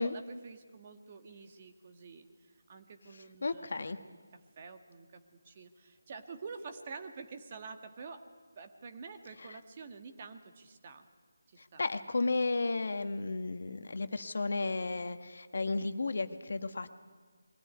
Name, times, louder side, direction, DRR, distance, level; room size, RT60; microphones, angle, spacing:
voice 1, 0.0-4.2 4.6-8.2 8.5-11.1 11.5-11.8, right 4 dB, 35° right, 6 dB, 1.7 m, -48 dB
voice 2, 3.4-4.0 11.6-16.9, left 3 dB, 60° left, 9 dB, 1.3 m, -33 dB
22.5 x 15.5 x 9.8 m, 1.5 s
figure-of-eight pair, 155°, 0 cm